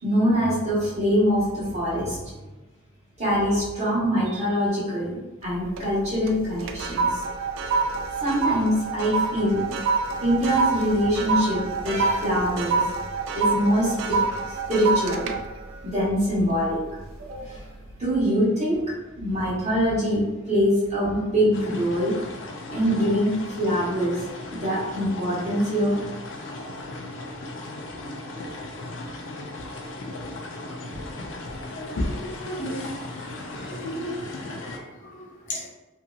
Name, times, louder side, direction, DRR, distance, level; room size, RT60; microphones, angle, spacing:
voice 1, 0.0-2.4 3.2-5.2 5.4-7.2 8.2-9.6 10.2-12.8 13.3-14.2 14.7-15.3 15.8-16.8 17.3-17.6 18.0-18.8 19.2-22.1 22.7-23.3 23.6-24.2 24.5-25.9, equal, 35° right, -9 dB, 1.3 m, -23 dB
sound 1, 5.4-5.9 6.3-16.8 17.3-17.6, right 4 dB, 85° right, 0.3 m, -27 dB
sound 2, 21.5-34.8, left 2 dB, 75° left, 0.5 m, -36 dB
voice 2, 31.7-33.2 33.6-35.7, equal, 45° left, -5 dB, 0.7 m, -36 dB
2.8 x 2.7 x 2.4 m, 1.1 s
head